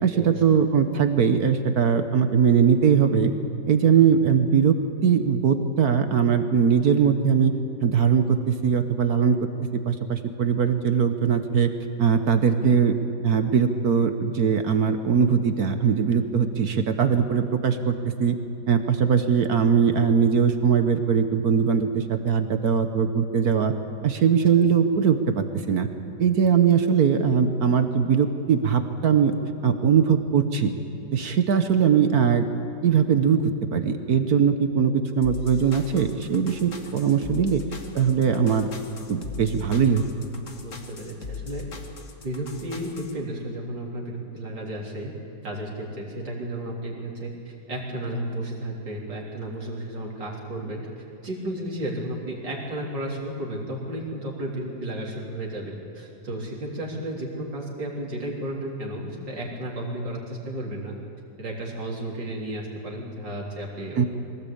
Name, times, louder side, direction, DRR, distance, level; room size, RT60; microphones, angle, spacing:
voice 1, 0.0-3.3 3.7-4.8 5.0-7.5 7.8-9.4 9.8-11.7 12.0-13.0 13.2-18.3 18.7-23.7 24.0-25.9 26.2-29.3 29.6-30.8 31.1-32.4 32.8-37.6 37.9-38.7 39.1-40.0 64.0-64.1, right 7 dB, 60° right, 8 dB, 1.4 m, -21 dB
sound 1, 35.2-43.1, left 5 dB, 45° left, 2.0 m, -39 dB
voice 2, 40.6-41.7 42.2-45.1 45.4-50.8 51.2-60.9 61.4-64.1, right 1 dB, 75° right, -3 dB, 4.4 m, -33 dB
22.5 x 18.0 x 8.7 m, 2.6 s
omnidirectional pair, 2.0 m